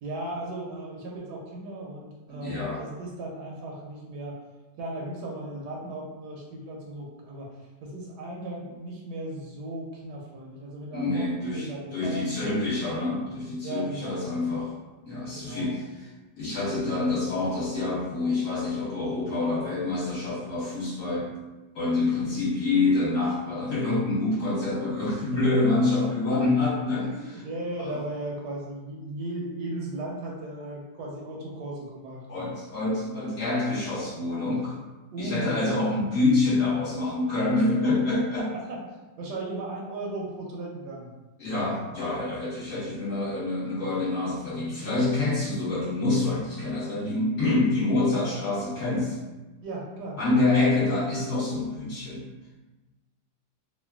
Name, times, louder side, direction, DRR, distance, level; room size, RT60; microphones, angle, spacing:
voice 1, 0.0-4.4 4.8-7.5 7.8-12.6 13.6-14.3 15.3-15.9 27.0-32.5 33.1-33.8 35.1-36.0 38.4-38.8 39.2-41.1 49.6-50.2, right 1 dB, 75° right, -3 dB, 1.1 m, -36 dB
voice 2, 2.3-2.8 10.9-14.7 15.0-16.1 16.4-21.3 21.7-27.0 27.8-28.0 32.3-34.8 35.2-38.4 41.4-49.2 50.2-52.3, left 2 dB, 55° left, -10 dB, 1.2 m, -26 dB
3.0 x 2.2 x 2.3 m, 1.1 s
omnidirectional pair, 1.9 m